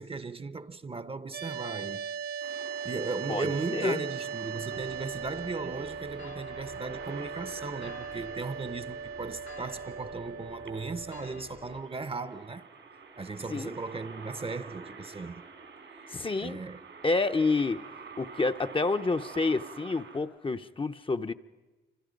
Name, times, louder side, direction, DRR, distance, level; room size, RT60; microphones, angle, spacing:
voice 1, 0.0-2.2 2.8-12.6 13.2-15.4 16.4-16.8, right 3 dB, 30° right, 0.7 m, -37 dB
sound 1, 1.3-11.4, right 7 dB, 60° right, 0.9 m, -39 dB
sound 2, 2.4-20.2, right 5 dB, 85° right, 3.7 m, -48 dB
voice 2, 3.3-4.0 13.5-13.8 16.1-16.6 17.0-17.8 18.2-21.3, left 3 dB, 30° left, 0.7 m, -29 dB
sound 3, 4.7-11.8, left 4 dB, 80° left, 1.8 m, -51 dB
28.5 x 25.5 x 5.2 m
cardioid pair, 85°, 19 cm